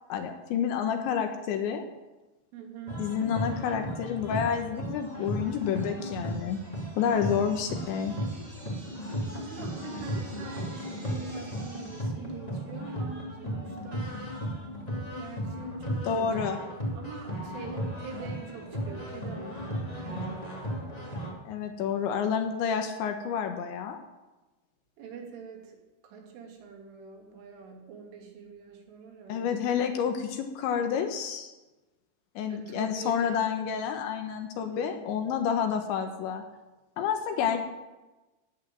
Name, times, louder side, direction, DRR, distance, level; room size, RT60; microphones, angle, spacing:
voice 1, 0.1-1.8 3.0-6.6 7.0-8.1 16.1-16.6 21.5-24.0 29.3-31.5 32.4-36.4 37.0-37.6, left 7 dB, 70° left, 6 dB, 3.2 m, -29 dB
voice 2, 2.5-3.0 9.3-14.1 15.1-20.7 25.0-25.8 26.0-29.7 32.5-33.4 34.6-35.3 37.3-37.5, right 5 dB, 70° right, 1 dB, 5.0 m, -44 dB
sound 1, 2.9-21.3, equal, 20° left, 1.1 m, -35 dB
sound 2, 4.3-12.0, right 1 dB, 15° right, 2.4 m, -50 dB
17.5 x 8.5 x 9.1 m, 1.1 s
omnidirectional pair, 5.9 m